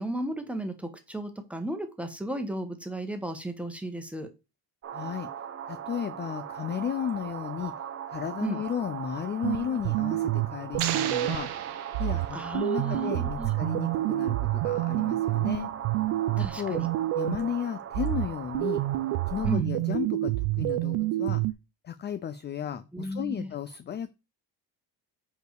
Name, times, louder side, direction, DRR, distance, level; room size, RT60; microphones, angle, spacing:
voice 1, 0.0-4.3 8.4-8.6 12.3-13.5 16.4-16.9 19.5-19.7 22.9-23.5, right 1 dB, 5° right, 6 dB, 1.2 m, -34 dB
sound 1, 4.8-19.6, right 9 dB, 35° right, 0.7 m, -39 dB
voice 2, 4.9-5.3 5.7-7.7 8.1-11.5 12.0-15.7 16.3-16.8 17.1-18.8 19.3-21.4 21.8-24.1, left 9 dB, 25° left, 12 dB, 0.3 m, -34 dB
sound 2, 9.4-11.6 11.9-17.6 17.9-21.5, right 17 dB, 85° right, 0.6 m, -28 dB
sound 3, 10.8-12.7, right 10 dB, 65° right, 1.0 m, -34 dB
4.9 x 4.6 x 4.8 m, 0.27 s
cardioid pair, 120°, 42 cm